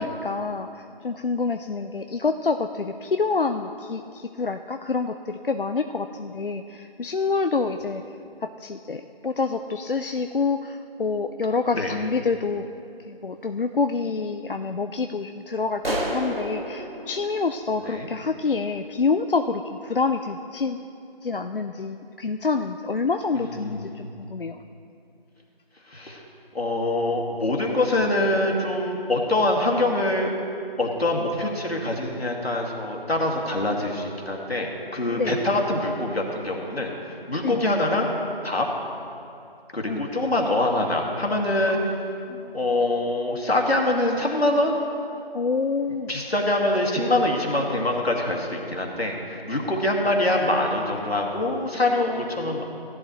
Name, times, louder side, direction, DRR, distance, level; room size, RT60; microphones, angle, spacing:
voice 1, 0.0-8.0 8.4-12.7 13.1-20.8 21.2-24.6 35.1-35.4 37.4-37.6 39.9-40.1 41.7-41.9 42.3-42.6 45.3-46.1 52.1-52.6, left 4 dB, 60° left, 7 dB, 0.5 m, -27 dB
sound 1, 15.8-18.4, right 1 dB, 70° right, 2.1 m, -31 dB
voice 2, 23.3-24.1 25.9-26.2 26.5-30.3 30.8-38.1 38.4-38.7 39.7-41.8 42.5-44.8 46.1-52.6, left 1 dB, 85° left, 0 dB, 2.2 m, -24 dB
16.0 x 11.0 x 3.1 m, 2.6 s
figure-of-eight pair, 175°, 30 cm